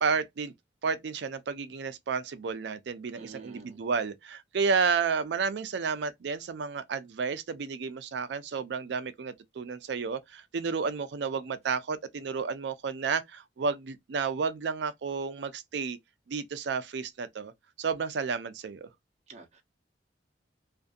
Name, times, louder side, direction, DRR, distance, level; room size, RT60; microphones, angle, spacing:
voice 1, 0.0-0.5 0.8-16.0 16.3-17.5 17.8-18.9, right 5 dB, 65° right, 0.4 m, -31 dB
voice 2, 3.2-3.8 19.3-19.6, right 4 dB, 40° right, 0.7 m, -48 dB
2.5 x 2.5 x 2.3 m
head